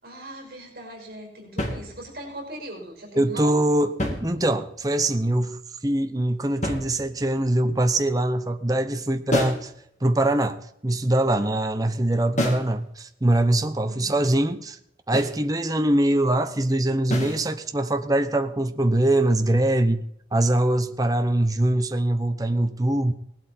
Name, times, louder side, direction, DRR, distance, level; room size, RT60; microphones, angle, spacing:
voice 1, 0.0-3.5 13.9-14.1, right 1 dB, 55° right, 5.0 m, -39 dB
sound 1, 1.6-2.3 3.8-4.8 6.6-7.4 9.3-9.7 12.4-12.8 15.1-15.4 17.1-17.5, equal, 40° left, 2.8 m, -29 dB
voice 2, 3.2-9.7 10.0-14.8 15.1-23.1, right 1 dB, 20° right, 0.8 m, -23 dB
18.5 x 12.0 x 4.4 m
head